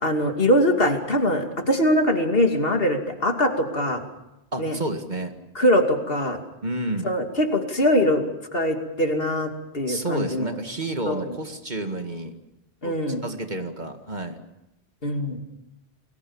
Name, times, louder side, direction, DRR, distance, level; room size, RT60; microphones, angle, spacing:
voice 1, 0.0-4.0 4.6-4.8 5.5-6.4 7.0-8.3 8.5-10.5 11.1-11.4 12.8-13.2 15.0-15.4, equal, 60° left, 4 dB, 2.9 m, -22 dB
voice 2, 4.5-5.3 6.6-7.1 9.9-12.3 12.8-13.0 13.2-14.4, right 1 dB, 45° right, 6 dB, 2.2 m, -30 dB
29.5 x 20.5 x 7.2 m, 0.91 s
omnidirectional pair, 1.1 m